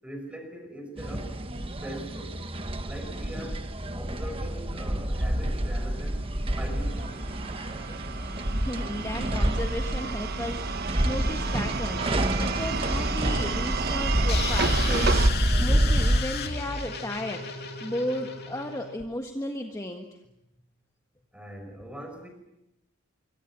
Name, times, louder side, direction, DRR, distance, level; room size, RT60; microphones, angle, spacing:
voice 1, 0.0-1.4 1.8-2.5 2.8-3.6 3.9-6.2 6.6-7.2 21.3-22.3, right 1 dB, 5° right, 5 dB, 5.7 m, -41 dB
sound 1, 1.0-16.2, right 1 dB, 30° right, 1.4 m, -28 dB
sound 2, 6.4-15.3, right 4 dB, 50° right, 1.3 m, -31 dB
voice 2, 8.5-12.1 12.4-15.3 15.6-17.5 17.8-20.2, left 1 dB, 15° left, 3 dB, 1.5 m, -34 dB
sound 3, 14.3-19.0, left 5 dB, 55° left, 2.8 m, -34 dB
26.0 x 24.0 x 7.5 m, 0.88 s
head